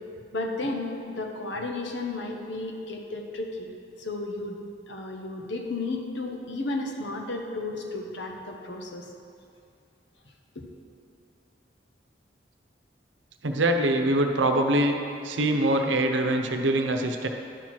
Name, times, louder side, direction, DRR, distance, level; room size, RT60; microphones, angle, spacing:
voice 1, 0.3-3.7 4.0-4.6 4.9-9.1 10.5-10.6, left 2 dB, 75° left, 2 dB, 1.0 m, -33 dB
voice 2, 13.4-14.9 15.2-17.3, right 1 dB, 85° right, 4 dB, 0.8 m, -23 dB
11.0 x 4.6 x 6.1 m, 2.4 s
head